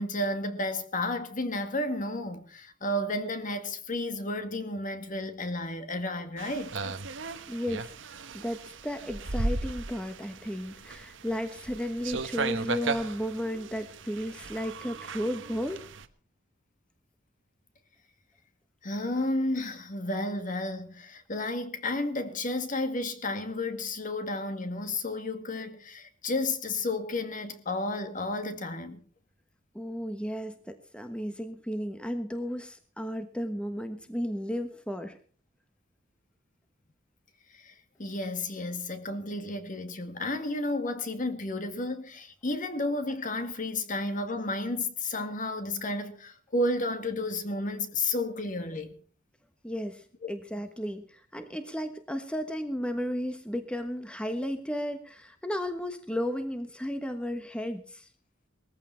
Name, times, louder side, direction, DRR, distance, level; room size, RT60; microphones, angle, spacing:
voice 1, 0.0-7.0 18.8-29.0 37.5-37.7 38.0-49.0 50.2-50.3, left 2 dB, 40° left, 2.0 m, -32 dB
sound 1, 6.4-16.1, right 3 dB, 65° right, 1.3 m, -36 dB
voice 2, 7.5-7.9 8.3-15.8 29.7-35.2 49.6-58.1, equal, 5° left, 1.2 m, -34 dB
20.0 x 14.5 x 4.5 m
head